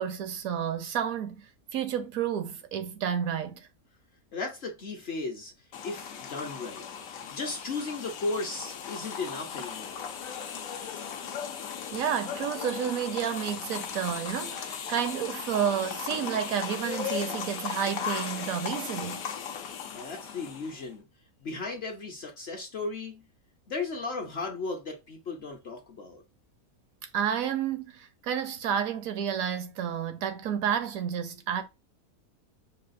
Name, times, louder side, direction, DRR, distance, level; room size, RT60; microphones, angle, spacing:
voice 1, 0.0-3.7 11.9-19.3 27.1-31.6, right 8 dB, 70° right, 0.9 m, -30 dB
voice 2, 4.3-5.5 5.8-6.8 7.3-10.1 19.9-21.0 21.4-23.2 23.7-26.2, left 3 dB, 50° left, 0.8 m, -35 dB
sound 1, 5.7-20.9, left 7 dB, 70° left, 1.0 m, -37 dB
5.5 x 2.4 x 2.5 m
omnidirectional pair, 1.6 m